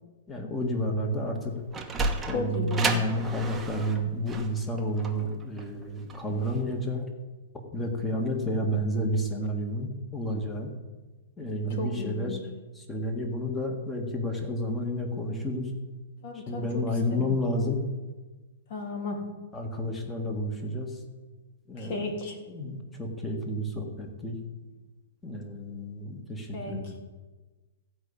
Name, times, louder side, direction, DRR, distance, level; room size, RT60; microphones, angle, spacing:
voice 1, 0.3-1.5 2.3-7.1 7.7-10.7 11.4-12.4 12.8-15.7 16.5-17.9 19.5-21.0 21.7-22.1 22.5-24.4 25.2-27.0, equal, 10° left, 3 dB, 1.7 m, -30 dB
Sliding door, 1.4-6.6, right 3 dB, 10° right, 1.1 m, -33 dB
voice 2, 2.3-2.9 11.8-12.4 16.2-17.3 18.7-19.2 21.8-22.4 26.5-26.9, left 3 dB, 50° left, 2 dB, 3.1 m, -34 dB
15.0 x 5.3 x 8.6 m, 1.3 s
hypercardioid pair, 155°, 0 cm